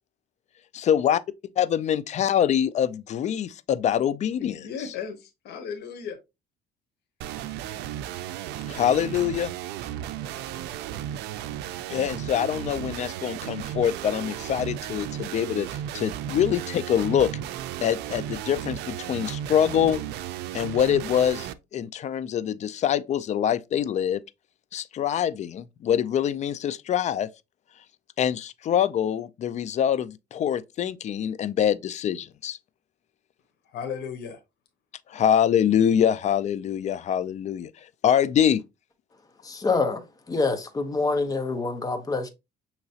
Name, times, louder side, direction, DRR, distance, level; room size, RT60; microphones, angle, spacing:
voice 1, 0.7-1.2 1.6-4.6 8.7-9.5 11.9-17.3 17.8-20.0 20.5-24.2 24.7-27.3 28.2-32.6 35.1-37.7 38.0-38.6, left 9 dB, 45° left, 0.4 m, -24 dB
voice 2, 4.4-6.2 33.6-34.4, left 7 dB, 75° left, 1.0 m, -35 dB
sound 1, 7.2-21.5, right 11 dB, 80° right, 0.4 m, -34 dB
voice 3, 39.4-42.3, left 3 dB, 20° left, 0.9 m, -26 dB
6.3 x 2.9 x 2.8 m
cardioid pair, 110°, 17 cm